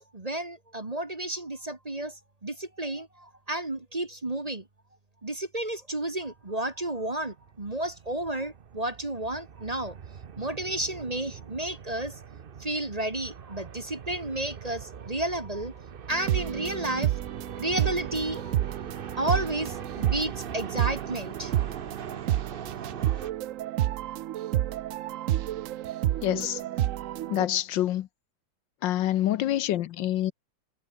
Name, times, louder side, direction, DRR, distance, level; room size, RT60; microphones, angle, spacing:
voice 1, 0.1-4.6 5.2-10.0 10.4-12.2 12.6-15.7 16.1-17.1 17.6-18.6 19.2-21.5, right 1 dB, 20° right, 1.6 m, -32 dB
sound 1, 6.2-23.3, right 7 dB, 50° right, 0.7 m, -42 dB
sound 2, 16.1-27.5, right 13 dB, 90° right, 0.7 m, -30 dB
voice 2, 26.2-26.6 27.3-28.1 28.8-30.3, left 13 dB, 75° left, 1.5 m, -26 dB
omnidirectional pair, 2.0 m